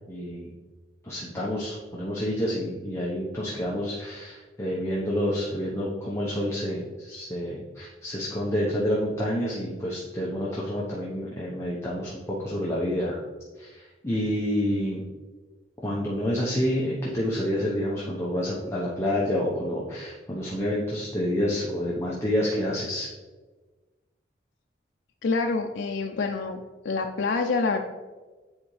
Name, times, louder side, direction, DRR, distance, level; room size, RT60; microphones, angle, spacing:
voice 1, 0.1-0.5 1.0-13.2 13.6-15.0 15.8-23.1, equal, 15° left, -6 dB, 0.9 m, -28 dB
voice 2, 25.2-26.6 26.8-27.8, left 4 dB, 80° left, 2 dB, 0.4 m, -26 dB
9.6 x 4.3 x 3.2 m, 1.3 s
head